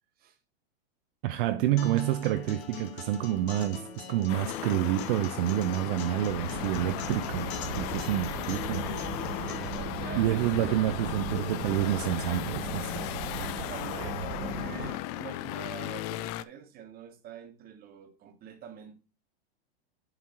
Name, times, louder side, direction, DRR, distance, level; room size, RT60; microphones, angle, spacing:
voice 1, 1.2-7.5 7.8-8.9 10.1-13.1, right 13 dB, 55° right, 0.6 m, -28 dB
Acoustic guitar, 1.8-9.8, left 6 dB, 85° left, 1.8 m, -42 dB
sound 1, 4.3-16.4, left 16 dB, 40° left, 0.4 m, -36 dB
sound 2, 6.3-14.9, right 4 dB, 75° right, 2.1 m, -38 dB
voice 2, 8.8-11.3 13.4-19.0, right 8 dB, 30° right, 1.3 m, -47 dB
7.8 x 4.5 x 4.3 m
hypercardioid pair, 135°, 32 cm